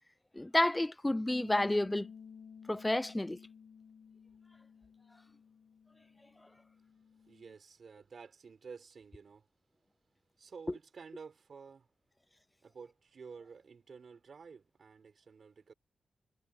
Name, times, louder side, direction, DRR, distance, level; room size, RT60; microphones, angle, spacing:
voice 1, 0.3-2.1 2.7-3.4, left 1 dB, 10° left, 0.3 m, -30 dB
Bass guitar, 1.3-7.5, left 6 dB, 60° left, 1.5 m, -53 dB
voice 2, 7.3-9.5 10.4-11.9 12.6-15.7, right 5 dB, 50° right, 6.2 m, -51 dB
wide cardioid pair, 160°, 0 cm